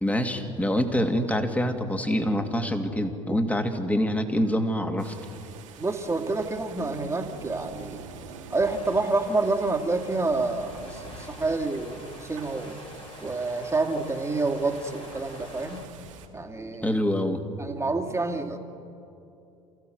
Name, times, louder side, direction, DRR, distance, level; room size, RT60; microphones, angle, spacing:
voice 1, 0.0-5.1 16.8-17.4, equal, 10° left, 6 dB, 2.5 m, -25 dB
sound 1, 5.0-16.3, right 5 dB, 75° right, 2.3 m, -45 dB
voice 2, 5.8-8.0 8.5-12.8 13.2-15.9 16.3-17.0 17.6-18.6, right 3 dB, 15° right, 3 dB, 2.4 m, -28 dB
sound 2, 8.6-15.9, left 3 dB, 35° left, 3.4 m, -47 dB
29.0 x 15.5 x 8.0 m, 2.8 s
figure-of-eight pair, 65°, 16 cm